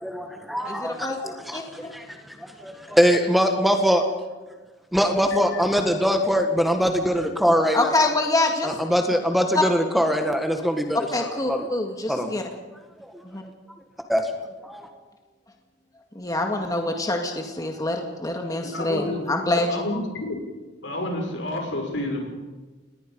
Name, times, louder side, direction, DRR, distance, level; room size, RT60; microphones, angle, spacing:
voice 1, 0.0-2.0 2.6-4.0 4.9-7.9 8.6-11.0 11.5-11.6 12.1-12.3 14.1-14.3 14.6-14.8, equal, ahead, 5 dB, 1.6 m, -22 dB
voice 2, 0.7-1.2 1.5-1.9 7.7-8.8 9.5-9.6 11.1-12.4 13.2-13.4 16.2-19.8, left 2 dB, 20° left, 2 dB, 2.0 m, -25 dB
voice 3, 18.6-20.0 20.3-20.4 20.8-22.3, left 1 dB, 80° left, 1 dB, 6.4 m, -29 dB
28.5 x 20.5 x 5.4 m, 1.3 s
head